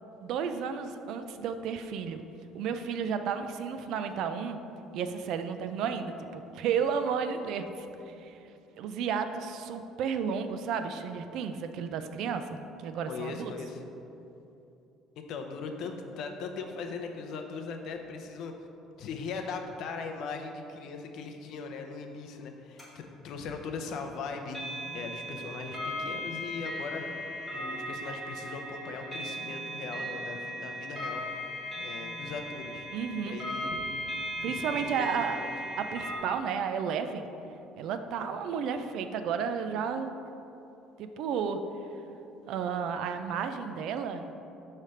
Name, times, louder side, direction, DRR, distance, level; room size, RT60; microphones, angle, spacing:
voice 1, 0.2-2.2 2.5-4.6 4.9-7.7 8.1-8.4 8.8-13.5 32.9-33.4 34.4-35.4 35.8-37.3 37.8-40.2 41.0-41.6 42.5-44.3, right 6 dB, 60° right, 8 dB, 0.4 m, -32 dB
voice 2, 13.1-13.8 15.2-18.5 19.0-27.2 27.5-31.2 31.8-32.9 33.2-35.5, left 4 dB, 55° left, 4 dB, 0.6 m, -39 dB
sound 1, 22.8-22.9 24.5-36.2, equal, 10° right, 1.3 m, -37 dB
6.4 x 3.2 x 5.5 m, 2.8 s
cardioid pair, 165°, 0 cm